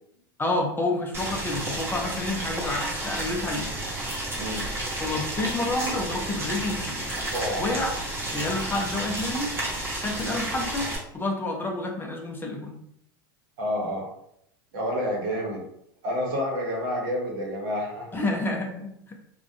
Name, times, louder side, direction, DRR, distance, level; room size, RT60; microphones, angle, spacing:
voice 1, 0.4-3.7 5.0-7.1 7.6-7.9 8.3-9.5 10.0-12.8 18.1-19.1, left 2 dB, 15° left, 1 dB, 0.5 m, -29 dB
Boiling, 1.1-11.0, right 1 dB, 20° right, 1.0 m, -31 dB
voice 2, 7.3-7.8 13.6-14.1 14.7-15.6 16.0-18.2, equal, 65° right, -2 dB, 0.9 m, -29 dB
2.3 x 2.1 x 2.5 m, 0.74 s
hypercardioid pair, 90°, 12 cm